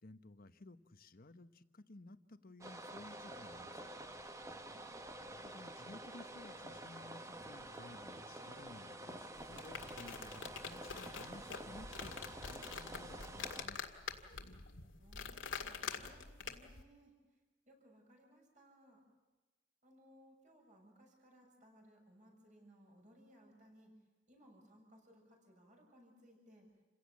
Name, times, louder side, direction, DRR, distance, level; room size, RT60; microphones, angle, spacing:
voice 1, 0.0-3.9 5.4-13.8, left 2 dB, 50° left, 10 dB, 1.0 m, -56 dB
sound 1, 2.6-13.7, right 1 dB, 15° right, 1.1 m, -49 dB
voice 2, 4.4-4.9 14.9-17.4 17.6-19.0 19.8-23.9 24.3-26.7, equal, 40° right, 1 dB, 6.8 m, -64 dB
sound 2, 9.3-16.8, left 6 dB, 90° left, 2.0 m, -46 dB
28.5 x 17.0 x 8.4 m, 1.2 s
head